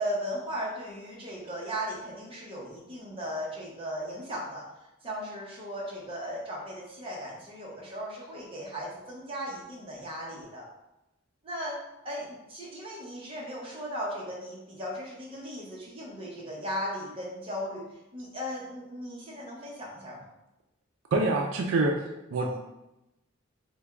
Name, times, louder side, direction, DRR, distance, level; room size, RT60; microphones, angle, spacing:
voice 1, 0.0-4.6 5.0-10.7 11.4-11.8 12.0-20.3 22.4-22.6, equal, 25° right, -4 dB, 0.8 m, -37 dB
voice 2, 21.1-21.9 22.3-22.6, right 2 dB, 80° right, 2 dB, 0.4 m, -25 dB
3.4 x 2.2 x 3.5 m, 0.94 s
head